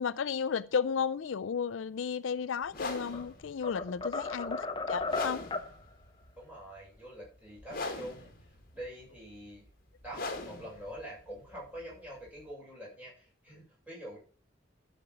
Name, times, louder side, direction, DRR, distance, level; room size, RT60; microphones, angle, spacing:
voice 1, 0.0-5.5, left 6 dB, 80° left, 0.4 m, -33 dB
sound 1, 2.6-12.5, left 2 dB, 50° left, 1.9 m, -42 dB
sound 2, 2.8-3.3 3.6-5.7, left 3 dB, 25° left, 0.8 m, -35 dB
voice 2, 6.4-8.3 8.7-9.6 10.0-14.2, right 1 dB, 10° right, 6.8 m, -45 dB
13.0 x 5.9 x 5.7 m
head